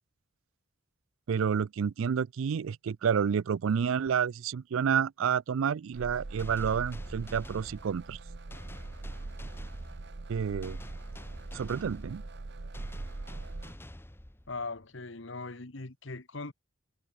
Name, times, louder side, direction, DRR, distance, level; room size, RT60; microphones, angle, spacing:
voice 1, 1.3-8.2 10.3-10.8 11.5-12.2, right 7 dB, 70° right, 0.4 m, -29 dB
sound 1, 5.9-13.8, right 2 dB, 50° right, 0.8 m, -42 dB
sound 2, 6.4-14.8, left 1 dB, 10° left, 0.9 m, -48 dB
voice 2, 14.5-16.5, left 3 dB, 60° left, 1.4 m, -40 dB
head